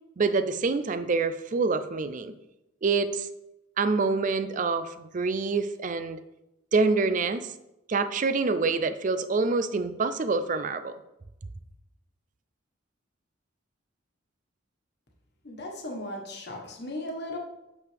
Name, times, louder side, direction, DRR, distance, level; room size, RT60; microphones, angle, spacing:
voice 1, 0.2-2.3 2.8-3.3 3.8-6.2 6.7-7.5 7.9-11.0, right 4 dB, 40° right, 12 dB, 0.4 m, -26 dB
voice 2, 15.4-17.4, left 1 dB, 55° left, 0 dB, 1.4 m, -36 dB
8.4 x 6.6 x 3.4 m, 0.90 s
head